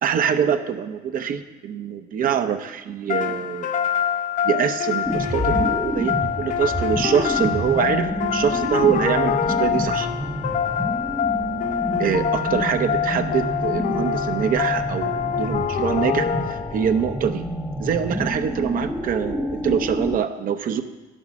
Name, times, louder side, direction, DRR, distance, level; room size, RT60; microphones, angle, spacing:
voice 1, 0.0-3.7 4.4-10.1 12.0-17.4 17.8-20.8, right 8 dB, 55° right, 8 dB, 0.8 m, -24 dB
sound 1, 3.1-17.0, left 8 dB, 50° left, 0.6 m, -25 dB
sound 2, 5.0-20.2, equal, 5° left, 0.6 m, -29 dB
11.0 x 6.4 x 5.9 m, 1.2 s
cardioid pair, 110°, 17 cm